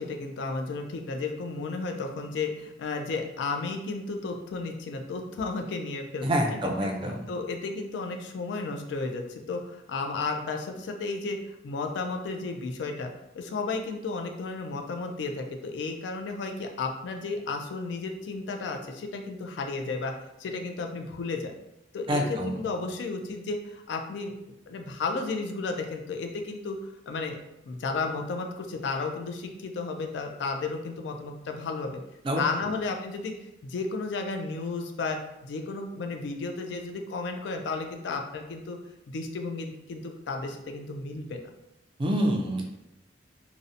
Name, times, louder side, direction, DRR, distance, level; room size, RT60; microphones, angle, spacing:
voice 1, 0.0-6.3 7.3-20.1 20.4-21.5 21.9-24.3 24.7-26.8 27.1-27.4 27.6-32.0 32.4-33.3 33.6-38.8 39.1-41.4, left 3 dB, 65° left, 4 dB, 0.3 m, -33 dB
voice 2, 6.2-7.3 22.1-22.6 32.2-32.4 42.0-42.6, right 1 dB, 25° right, 1 dB, 0.3 m, -27 dB
2.6 x 2.0 x 2.5 m, 0.89 s
head